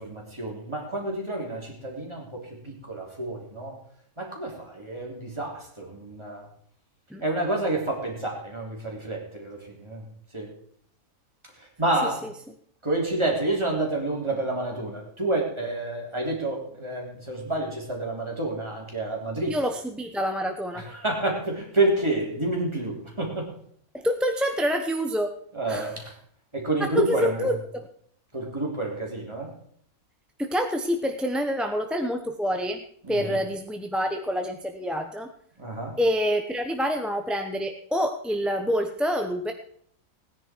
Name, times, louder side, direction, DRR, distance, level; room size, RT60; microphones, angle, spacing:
voice 1, 0.0-3.8 4.2-6.5 7.2-10.1 10.3-10.5 11.6-12.2 12.8-19.6 20.7-23.5 25.5-26.2 26.5-27.5 28.3-29.5 33.0-33.4 35.6-36.0, right 2 dB, 20° right, -2 dB, 3.6 m, -29 dB
voice 2, 19.5-20.8 23.9-25.3 25.7-25.9 26.8-27.6 30.4-32.8 33.1-35.3 36.0-39.5, equal, ahead, 4 dB, 0.7 m, -27 dB
18.0 x 10.0 x 4.5 m, 0.62 s
omnidirectional pair, 1.5 m